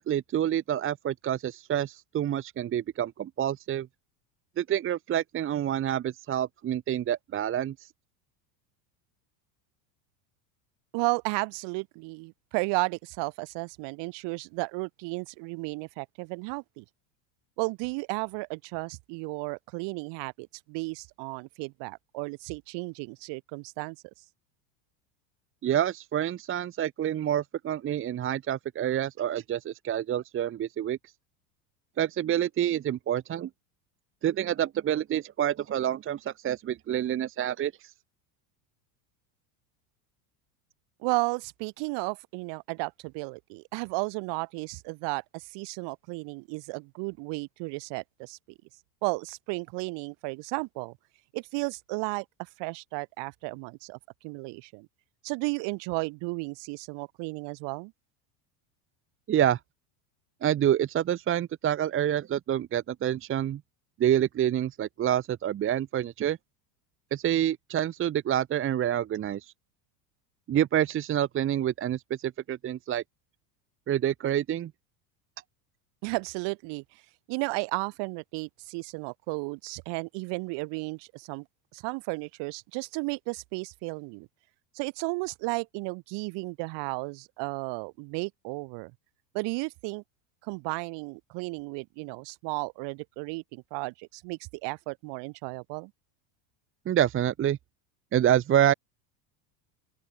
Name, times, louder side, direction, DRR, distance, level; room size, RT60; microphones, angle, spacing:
voice 1, 0.0-3.9 4.6-7.9 25.6-31.0 32.0-33.5 34.2-37.9 59.3-59.6 60.4-63.6 64.0-66.4 67.1-69.5 70.5-73.0 73.9-74.7 96.9-97.6 98.1-98.7, right 11 dB, 25° right, 1.0 m, -27 dB
voice 2, 10.9-16.8 17.6-24.0 41.0-48.4 49.0-51.0 51.3-54.0 54.2-54.9 55.2-57.9 76.0-77.0 77.3-81.4 81.7-84.3 84.7-88.9 89.3-90.0 90.4-95.9, right 29 dB, 60° right, 6.5 m, -34 dB
open air
supercardioid pair, 130°, 47 cm